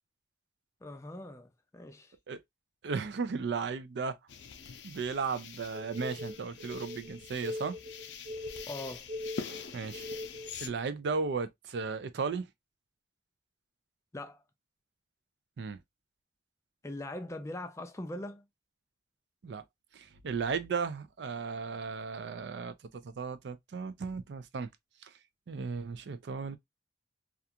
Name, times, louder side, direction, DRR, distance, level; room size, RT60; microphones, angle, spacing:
voice 1, 0.8-1.5 1.7-2.1 8.7-9.1 14.1-14.4 16.8-18.4, left 1 dB, 15° left, 0.4 m, -41 dB
voice 2, 2.8-4.2 4.8-7.8 9.7-10.0 10.6-12.5 15.6-15.8 19.4-19.6 19.9-24.7 25.5-26.6, right 5 dB, 75° right, 0.4 m, -35 dB
sound 1, 4.3-10.7, left 6 dB, 80° left, 0.5 m, -45 dB
sound 2, 5.7-10.6, left 1 dB, 40° right, 0.7 m, -41 dB
2.4 x 2.3 x 2.7 m
head